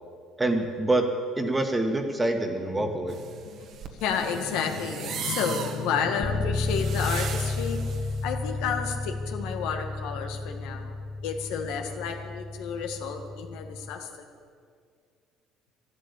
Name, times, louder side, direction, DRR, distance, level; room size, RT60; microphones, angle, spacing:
voice 1, 0.4-1.0 1.4-3.2, right 2 dB, 15° right, 5 dB, 1.7 m, -26 dB
sound 1, 3.1-8.2, right 6 dB, 55° right, 1.5 m, -38 dB
voice 2, 3.9-10.9 11.2-14.1, left 6 dB, 85° left, 4 dB, 1.7 m, -31 dB
sound 2, 6.2-13.9, left 3 dB, 30° left, 1.1 m, -32 dB
12.0 x 12.0 x 8.4 m, 2.1 s
cardioid pair, 115°, 0 cm